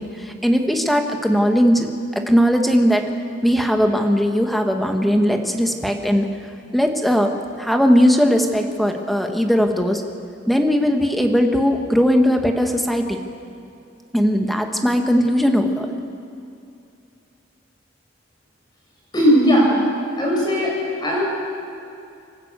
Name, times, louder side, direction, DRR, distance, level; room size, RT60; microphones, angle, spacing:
voice 1, 0.0-3.1 3.4-6.4 6.7-10.0 10.5-13.2 14.1-15.9, equal, ahead, 3 dB, 1.4 m, -19 dB
voice 2, 19.1-19.7 20.2-20.7 21.0-21.2, equal, 25° left, -3 dB, 6.7 m, -17 dB
26.0 x 13.0 x 8.2 m, 2.6 s
head